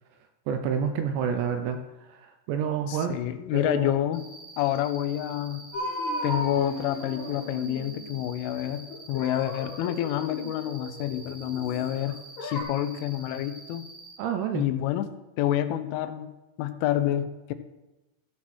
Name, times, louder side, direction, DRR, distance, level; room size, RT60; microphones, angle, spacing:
voice 1, 0.5-3.2 3.5-3.9 14.2-14.7, right 7 dB, 80° right, 6 dB, 2.6 m, -29 dB
voice 2, 2.9-4.3 4.6-5.7 6.2-13.9 14.5-15.1 15.4-16.3 16.6-17.5, left 12 dB, 90° left, 10 dB, 3.2 m, -28 dB
Cricket, 4.1-14.1, right 2 dB, 55° right, 4.1 m, -47 dB
sound 1, 5.7-8.2 8.9-11.9 12.4-12.6, left 1 dB, 55° left, 2.9 m, -36 dB
15.5 x 6.3 x 4.3 m, 1.0 s
omnidirectional pair, 5.5 m